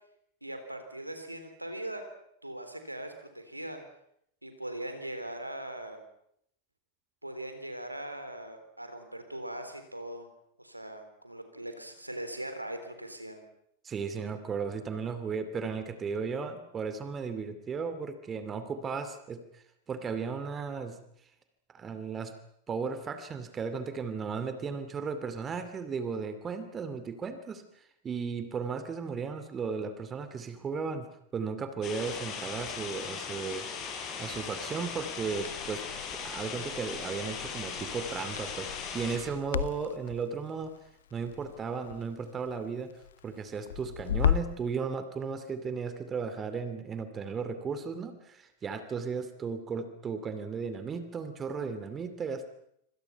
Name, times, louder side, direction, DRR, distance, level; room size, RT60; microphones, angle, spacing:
voice 1, 0.4-2.1 2.4-3.8 4.4-6.0 7.2-10.3 10.6-13.4, right 1 dB, 85° right, 7 dB, 3.8 m, -40 dB
voice 2, 13.8-21.0 21.7-22.3 22.7-33.7 34.2-35.8 36.1-40.7 41.1-42.9 43.2-52.5, right 5 dB, 20° right, 10 dB, 2.6 m, -35 dB
sound 1, 31.8-39.2, left 6 dB, 35° left, 6.3 m, -38 dB
Crackle, 35.3-44.6, left 9 dB, 65° left, 0.9 m, -36 dB
26.0 x 26.0 x 5.8 m, 0.72 s
figure-of-eight pair, 90°, 0 cm